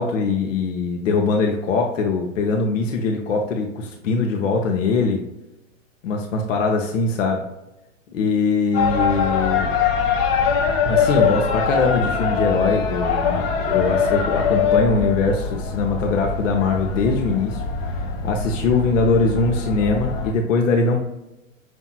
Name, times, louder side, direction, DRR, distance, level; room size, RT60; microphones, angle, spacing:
voice 1, 0.0-5.2 6.0-7.4 8.1-9.7 10.8-17.6 18.0-21.0, left 4 dB, 70° left, 2 dB, 0.7 m, -22 dB
sound 1, 8.7-20.3, left 6 dB, 30° left, 0.5 m, -22 dB
5.9 x 2.7 x 2.3 m, 0.91 s
figure-of-eight pair, 105°, 40 cm